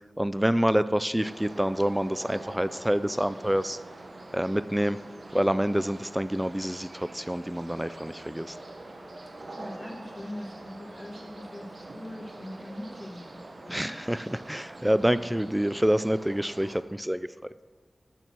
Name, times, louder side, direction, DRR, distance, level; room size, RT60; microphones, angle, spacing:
voice 1, 0.2-3.8 4.3-5.0 5.3-8.6 13.7-17.3, equal, 10° right, 14 dB, 0.3 m, -27 dB
sound 1, 1.2-16.8, right 2 dB, 65° right, 1.0 m, -45 dB
voice 2, 9.6-13.2 13.6-13.9, left 1 dB, 30° left, -1 dB, 1.4 m, -41 dB
6.7 x 6.0 x 7.3 m, 1.3 s
cardioid pair, 40°, 0 cm